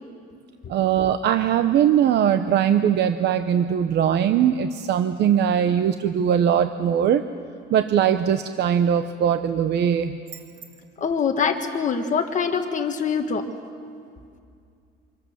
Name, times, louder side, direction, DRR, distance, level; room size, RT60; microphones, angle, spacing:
voice 1, 0.7-7.2 7.7-10.2, right 9 dB, 55° right, 9 dB, 0.8 m, -20 dB
voice 2, 11.0-13.4, left 6 dB, 35° left, 5 dB, 1.4 m, -24 dB
29.0 x 27.0 x 7.2 m, 2.4 s
cardioid pair, 155°, 21 cm